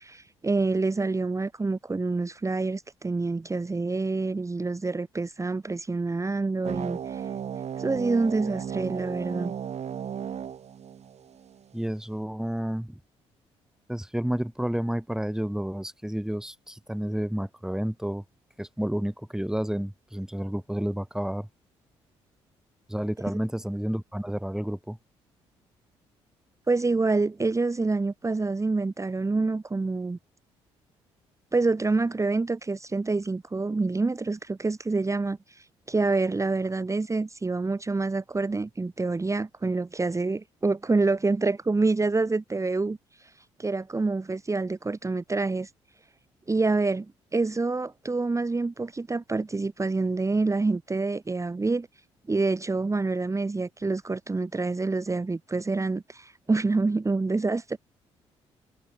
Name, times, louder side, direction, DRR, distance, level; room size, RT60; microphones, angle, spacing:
voice 1, 0.0-7.2 7.8-9.5 26.7-30.2 31.5-43.3 43.6-45.7 46.5-47.1 47.3-51.9 52.3-57.8, right 3 dB, 20° right, 1.3 m, -27 dB
sound 1, 6.6-11.6, right 8 dB, 50° right, 1.8 m, -35 dB
voice 2, 11.7-13.0 13.9-18.2 18.6-21.5 22.9-25.0, equal, 5° right, 4.7 m, -30 dB
hypercardioid pair, 50°, 14 cm